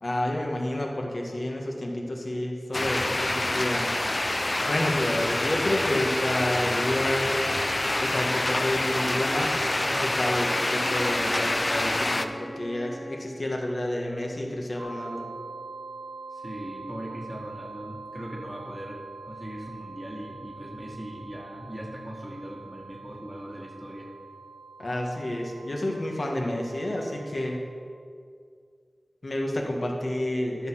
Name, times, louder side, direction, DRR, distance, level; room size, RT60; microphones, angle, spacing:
voice 1, 0.0-3.9 4.6-7.4 8.0-15.3 24.8-27.6 29.2-30.7, left 1 dB, 65° left, 0 dB, 1.6 m, -29 dB
sound 1, 2.7-12.3, left 2 dB, 45° left, 0.5 m, -27 dB
Wind instrument woodwind instrument, 9.8-13.3, right 1 dB, 5° left, 2.0 m, -40 dB
sound 2, 14.8-27.6, right 4 dB, 75° right, 1.0 m, -44 dB
voice 2, 16.3-24.1, equal, 10° right, -3 dB, 1.4 m, -39 dB
10.5 x 6.0 x 6.1 m, 2.2 s
wide cardioid pair, 55°, 0 cm